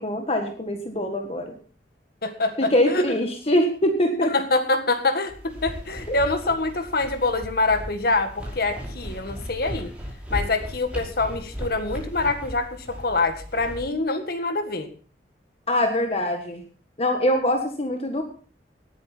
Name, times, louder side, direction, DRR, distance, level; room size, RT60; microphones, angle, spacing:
voice 1, 0.0-1.6 2.6-4.3 6.1-6.2 15.7-16.6 17.0-18.2, left 1 dB, 35° left, 4 dB, 1.6 m, -23 dB
voice 2, 2.2-3.0 4.2-9.9 10.3-14.9, left 3 dB, 60° left, 8 dB, 1.8 m, -25 dB
sound 1, 5.3-13.8, equal, 5° right, 5.2 m, -36 dB
18.5 x 10.0 x 4.4 m, 0.39 s
head